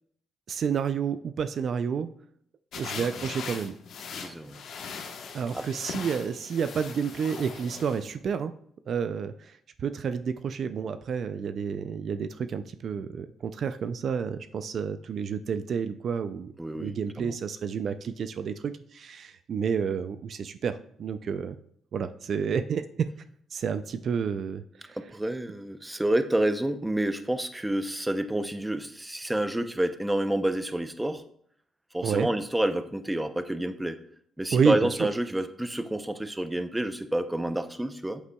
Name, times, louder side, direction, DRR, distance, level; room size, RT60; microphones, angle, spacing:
voice 1, 0.5-2.1 2.8-3.7 5.3-8.5 8.9-21.6 21.9-23.1 23.5-25.0 32.0-32.3 34.5-35.1, right 6 dB, 55° right, 11 dB, 0.4 m, -30 dB
sound 1, 2.7-8.0, left 5 dB, 70° left, 1.1 m, -40 dB
voice 2, 4.2-4.6 5.5-5.6 16.6-17.4 24.9-31.2 31.9-34.0 34.4-38.2, right 1 dB, 10° right, 9 dB, 0.6 m, -29 dB
8.1 x 8.0 x 2.3 m, 0.65 s
cardioid pair, 90°, 0 cm